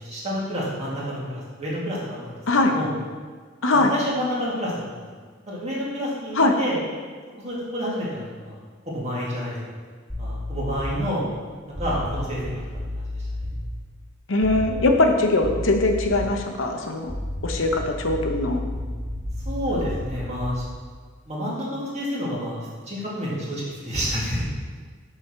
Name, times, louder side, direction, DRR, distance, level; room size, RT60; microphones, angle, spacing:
voice 1, 0.0-2.4 2.7-2.9 3.7-5.0 5.5-6.8 7.4-8.6 8.9-9.6 10.2-11.3 11.8-12.6 13.1-13.2 19.5-20.6 21.3-22.6 22.9-24.5, equal, 35° right, -6 dB, 2.1 m, -29 dB
sound 1, 10.1-11.1 11.7-13.6 14.4-15.1 15.4-16.4 17.0-20.7, left 1 dB, 5° right, 2.5 m, -32 dB
voice 2, 14.3-17.1 17.4-18.6, left 2 dB, 75° left, 3 dB, 0.9 m, -21 dB
6.4 x 4.9 x 6.0 m, 1.5 s
head